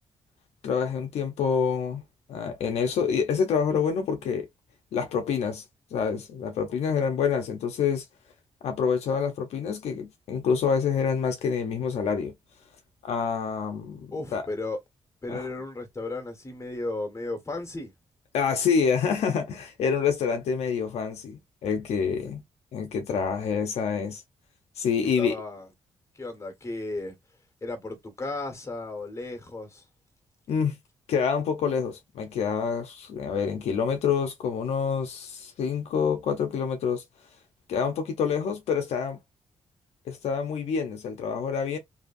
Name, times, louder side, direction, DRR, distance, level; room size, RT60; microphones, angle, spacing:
voice 1, 0.6-2.0 2.3-4.5 4.9-5.6 5.9-8.0 8.6-12.3 13.0-14.4 15.3-15.5 18.3-22.4 22.7-24.2 24.8-25.4 30.5-30.8 31.1-37.0 37.7-39.2 40.1-41.8, left 6 dB, 80° left, 0.6 m, -27 dB
voice 2, 14.1-14.8 15.2-17.9 24.9-25.7 26.1-27.2 27.6-29.8, left 2 dB, 25° left, 1.4 m, -34 dB
2.8 x 2.4 x 2.5 m
cardioid pair, 70°, 11 cm